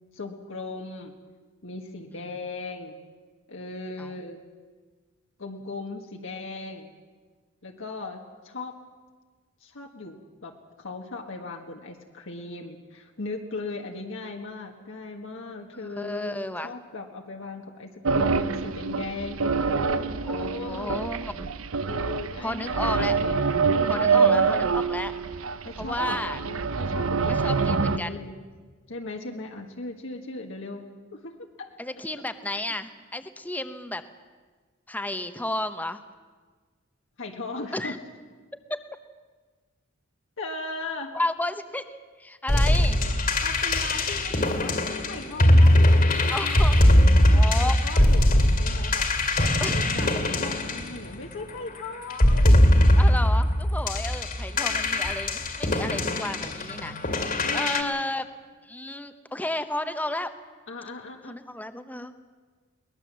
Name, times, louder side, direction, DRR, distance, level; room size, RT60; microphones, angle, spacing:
voice 1, 0.1-1.1 1.6-2.9 3.5-4.4 5.4-6.9 7.6-8.8 9.6-10.5 10.8-21.0 21.8-23.4 23.7-24.6 25.6-28.3 28.9-30.8 31.1-31.8 37.2-38.0 40.4-41.1 43.4-52.6 53.7-53.9 54.5-55.1 57.4-58.0 60.7-61.4, left 3 dB, 65° left, 2 dB, 1.6 m, -38 dB
voice 2, 15.7-16.7 20.3-21.5 22.4-23.2 23.9-25.1 25.8-26.4 27.4-28.2 31.8-34.0 34.9-36.0 37.7-38.0 38.7-38.8 41.1-41.9 42.2-43.0 46.3-46.8 47.3-47.8 49.6-49.9 53.0-58.2 58.6-60.3 61.3-62.1, left 1 dB, 10° left, 9 dB, 0.9 m, -32 dB
sound 1, 18.1-28.0, right 5 dB, 75° right, 0.8 m, -25 dB
sound 2, 42.5-51.5 52.1-57.8, left 1 dB, 45° left, 2.3 m, -21 dB
22.5 x 19.5 x 7.5 m, 1.4 s
head